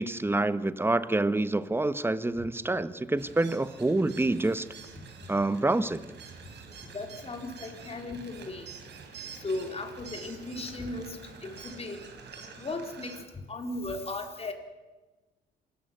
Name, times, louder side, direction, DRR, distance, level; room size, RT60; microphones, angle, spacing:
voice 1, 0.0-4.7 5.3-6.1, right 2 dB, 10° right, 14 dB, 1.1 m, -27 dB
sound 1, 3.2-13.2, right 5 dB, 60° right, 4.2 m, -47 dB
voice 2, 6.9-8.7 9.4-12.0 12.6-13.1 13.5-14.5, left 2 dB, 30° left, 4 dB, 4.0 m, -36 dB
27.0 x 14.0 x 9.2 m, 1.2 s
cardioid pair, 90°, 20 cm